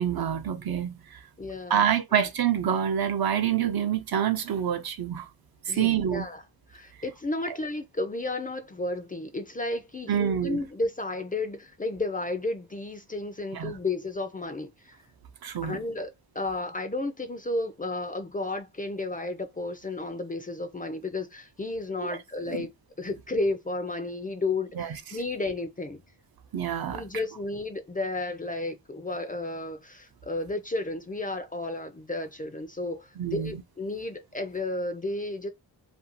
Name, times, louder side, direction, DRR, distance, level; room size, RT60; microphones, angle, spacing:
voice 1, 0.0-1.2 1.7-5.3 5.7-6.2 7.5-7.6 10.1-10.6 13.5-13.7 15.4-15.8 22.1-22.2 22.5-22.7 24.8-25.0 26.5-27.0 33.2-33.6, right 9 dB, 60° right, 0.6 m, -27 dB
voice 2, 1.4-2.2 5.7-6.4 6.7-15.0 15.6-22.7 23.0-26.0 26.9-35.5, left 2 dB, 20° left, 0.4 m, -32 dB
2.6 x 2.3 x 2.8 m
cardioid pair, 75°, 41 cm